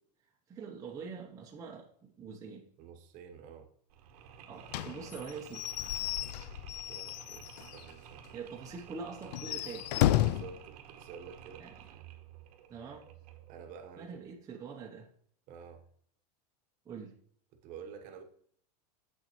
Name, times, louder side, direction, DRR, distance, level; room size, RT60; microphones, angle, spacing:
voice 1, 0.5-2.7 4.5-5.7 8.3-9.9 11.6-11.7 12.7-13.1 14.0-15.1 16.9-17.2, right 5 dB, 15° right, 0.7 m, -44 dB
voice 2, 2.8-3.7 6.9-8.3 10.2-11.7 13.5-14.2 15.5-15.8 17.5-18.2, right 7 dB, 40° right, 1.0 m, -49 dB
Mechanisms, 3.9-13.7, right 9 dB, 70° right, 1.1 m, -52 dB
Slam / Squeak / Wood, 4.7-7.9 8.2-8.3 8.6-8.7 9.2-10.6, left 14 dB, 80° left, 0.4 m, -32 dB
7.9 x 6.7 x 3.0 m
supercardioid pair, 155°, 21 cm